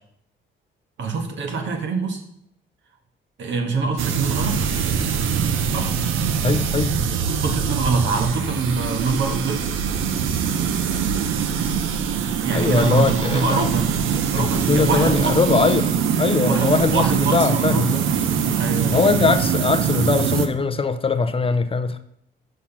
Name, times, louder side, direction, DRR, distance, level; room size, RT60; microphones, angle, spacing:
voice 1, 1.0-2.2 3.4-4.7 5.7-6.0 7.3-9.8 12.4-13.9 14.3-15.4 16.5-17.8 18.6-19.0, right 4 dB, 70° right, 4 dB, 1.4 m, -24 dB
sound 1, 4.0-20.5, right 7 dB, 85° right, 0.7 m, -23 dB
voice 2, 6.4-7.0 12.5-13.7 14.3-15.9 16.2-17.0 17.3-18.0 18.9-22.0, left 4 dB, 30° left, 10 dB, 0.5 m, -21 dB
6.1 x 5.8 x 5.9 m, 0.73 s
cardioid pair, 90°, 20 cm